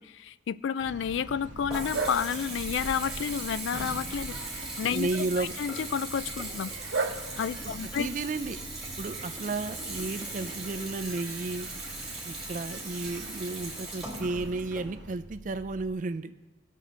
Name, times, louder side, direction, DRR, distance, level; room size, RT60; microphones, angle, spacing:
voice 1, 0.0-5.1 5.4-6.7 7.3-8.1, left 7 dB, 75° left, 17 dB, 0.3 m, -31 dB
Bark, 0.8-15.2, right 3 dB, 70° right, 0.8 m, -41 dB
Water tap faucet / Bathtub (filling or washing) / Trickle dribble, 1.1-15.9, right 2 dB, 5° right, 2.4 m, -39 dB
voice 2, 4.9-5.5 8.0-8.6 9.0-11.7 12.2-16.3, right 3 dB, 40° right, 11 dB, 0.4 m, -33 dB
18.0 x 6.4 x 3.9 m, 1.1 s
head